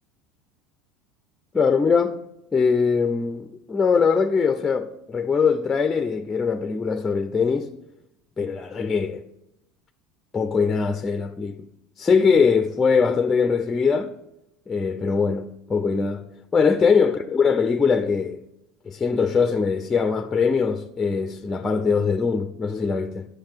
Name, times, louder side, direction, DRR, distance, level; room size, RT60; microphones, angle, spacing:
voice 1, 1.5-2.2 2.5-7.7 8.4-9.2 10.3-11.6 12.0-14.1 14.7-16.3 16.5-18.4 18.9-23.3, left 5 dB, 20° left, 0.6 m, -22 dB
8.6 x 6.7 x 7.6 m
supercardioid pair, 110°, 0 cm